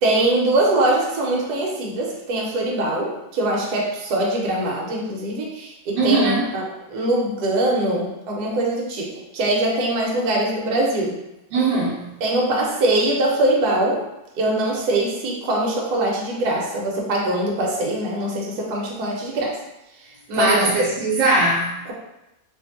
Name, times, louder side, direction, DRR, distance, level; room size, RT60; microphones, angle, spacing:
voice 1, 0.0-9.1 9.3-11.1 12.2-14.0 14.4-19.6 20.3-20.6 21.9-22.0, right 1 dB, 65° right, -2 dB, 1.3 m, -22 dB
voice 2, 6.0-6.5 11.5-12.1 20.3-21.8, right 2 dB, 80° right, -4 dB, 1.4 m, -20 dB
2.9 x 2.8 x 4.0 m, 0.92 s
omnidirectional pair, 2.0 m